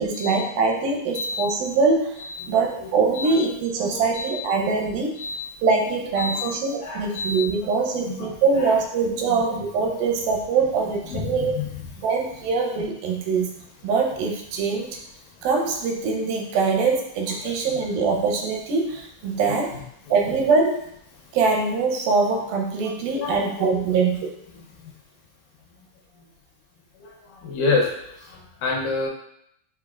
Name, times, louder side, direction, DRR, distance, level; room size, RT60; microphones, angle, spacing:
voice 1, 0.0-2.2 2.5-5.3 5.6-11.6 12.0-13.6 13.8-15.0 15.4-19.8 20.1-20.8 21.3-24.3, right 4 dB, 85° right, 1 dB, 2.4 m, -23 dB
voice 2, 3.9-4.4 5.2-5.4 6.2-6.5 6.8-7.4 8.0-8.3 8.6-8.8 9.3-9.4 11.1-11.7 17.4-17.5 19.4-19.8 23.2-23.8 27.4-27.9 28.3-29.1, left 3 dB, 75° left, -1 dB, 2.1 m, -28 dB
7.0 x 2.7 x 2.3 m, 0.73 s
omnidirectional pair, 4.2 m